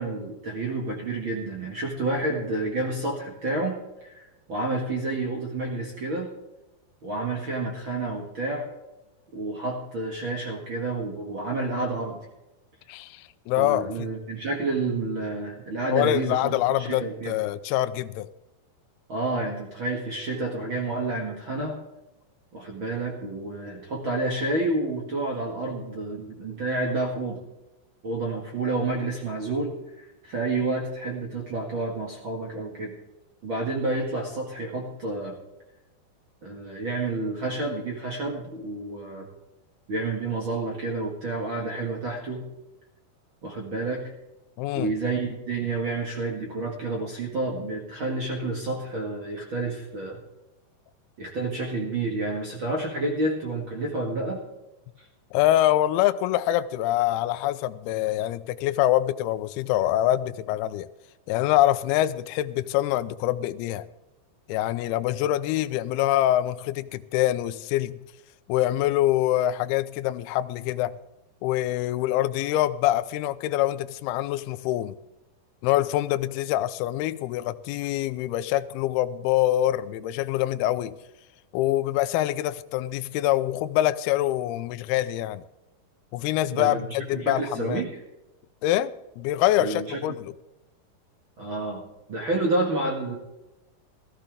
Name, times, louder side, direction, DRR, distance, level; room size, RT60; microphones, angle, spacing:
voice 1, 0.0-4.2 4.5-6.3 7.0-8.6 9.3-12.2 13.6-17.4 19.1-21.8 22.5-27.4 28.0-32.9 33.4-35.4 36.4-39.3 39.9-42.4 43.4-44.1 44.7-50.2 51.2-54.4 55.0-55.1 86.5-86.8 87.1-87.9 89.6-90.2 91.4-91.8 92.1-93.1, right 2 dB, 50° right, 1.5 m, -29 dB
voice 2, 12.9-14.1 15.9-18.3 44.6-44.9 55.3-60.9 61.3-63.8 64.5-68.0 68.5-71.0 71.4-75.0 75.6-81.0 81.5-85.4 86.1-87.8 88.6-90.3, left 14 dB, 80° left, 2.3 m, -25 dB
15.0 x 15.0 x 3.6 m
omnidirectional pair, 5.0 m